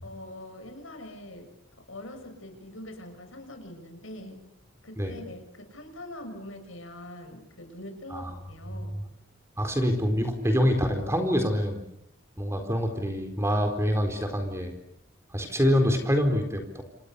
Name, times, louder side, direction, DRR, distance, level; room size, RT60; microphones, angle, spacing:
voice 1, 0.0-1.5 1.9-4.4 4.8-9.0, left 1 dB, 75° left, 6 dB, 6.9 m, -43 dB
voice 2, 9.6-11.8 12.4-14.7 15.3-16.8, equal, 15° right, 5 dB, 4.3 m, -25 dB
29.0 x 28.0 x 7.0 m, 0.75 s
head